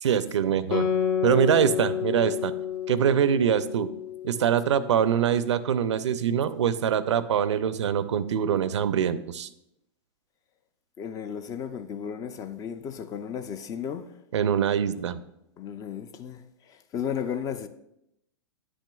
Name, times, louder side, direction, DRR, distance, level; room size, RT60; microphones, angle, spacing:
voice 1, 0.0-0.9 1.2-2.5 2.9-3.9 4.2-9.5 14.3-15.2, right 8 dB, 75° right, 0.5 m, -24 dB
Guitar, 0.7-5.6, left 8 dB, 50° left, 0.9 m, -30 dB
voice 2, 11.0-14.1 15.6-17.7, left 8 dB, 25° left, 0.4 m, -34 dB
9.8 x 6.2 x 2.3 m
hypercardioid pair, 115°, 15 cm